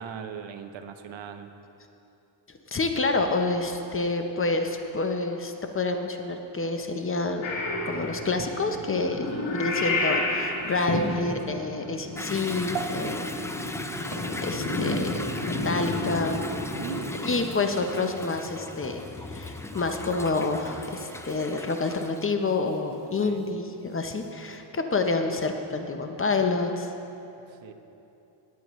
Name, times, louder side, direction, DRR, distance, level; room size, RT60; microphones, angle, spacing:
voice 1, 0.0-1.5 9.1-9.6 12.7-13.2 16.8-17.2 23.2-23.4 27.5-27.7, right 7 dB, 65° right, 8 dB, 0.9 m, -39 dB
voice 2, 2.7-7.5 7.9-13.3 13.8-14.1 14.4-16.4 17.2-19.0 19.3-26.9, left 3 dB, 25° left, 5 dB, 0.7 m, -28 dB
Purr / Meow, 7.4-17.4, left 2 dB, 70° left, 2.4 m, -31 dB
sound 1, 7.8-16.2 16.8-24.6, right 5 dB, 85° right, 1.6 m, -47 dB
Toilet flush / Drip / Trickle dribble, 12.2-22.3, left 2 dB, 5° left, 0.4 m, -38 dB
18.5 x 8.4 x 3.1 m, 2.9 s
cardioid pair, 100°, 48 cm